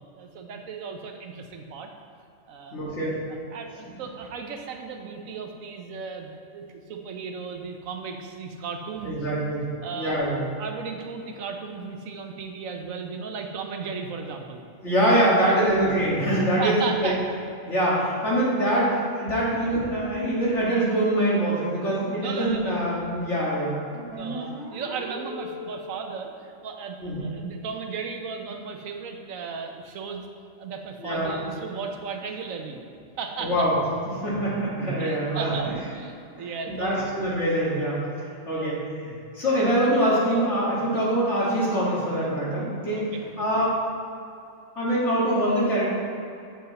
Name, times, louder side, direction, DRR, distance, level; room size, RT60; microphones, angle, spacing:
voice 1, 0.2-1.9 2.5-2.8 3.3-9.3 9.8-10.2 10.6-14.6 15.4-15.7 16.6-17.3 19.5-19.8 22.2-22.8 24.2-30.2 30.6-32.8 33.2-33.7 34.9-37.1 38.5-38.7 43.0-43.3, right 5 dB, 75° right, 3 dB, 1.2 m, -35 dB
voice 2, 2.7-3.2 9.1-9.7 9.9-10.4 14.8-17.1 17.7-24.3 27.0-27.3 31.0-31.3 33.4-33.7 34.2-35.7 36.8-38.0 38.4-43.0 43.4-43.8 44.8-45.9, right 1 dB, 55° left, -8 dB, 2.4 m, -24 dB
sound 1, 24.1-26.1, equal, 20° right, 1.1 m, -37 dB
8.9 x 8.0 x 4.2 m, 2.6 s
omnidirectional pair, 1.4 m